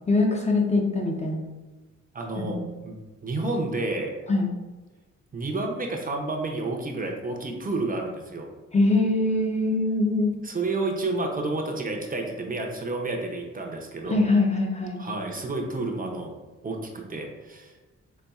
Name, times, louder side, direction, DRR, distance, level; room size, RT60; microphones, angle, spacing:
voice 1, 0.1-1.5 2.4-2.7 4.3-4.5 8.7-10.4 14.1-15.0, left 2 dB, 25° left, 0 dB, 0.4 m, -23 dB
voice 2, 2.1-2.6 2.8-2.9 3.2-4.1 5.3-8.5 10.4-14.3 15.0-16.3 16.6-17.7, right 2 dB, 30° right, 1 dB, 0.5 m, -30 dB
4.0 x 3.5 x 2.3 m, 1.2 s
wide cardioid pair, 130°, 29 cm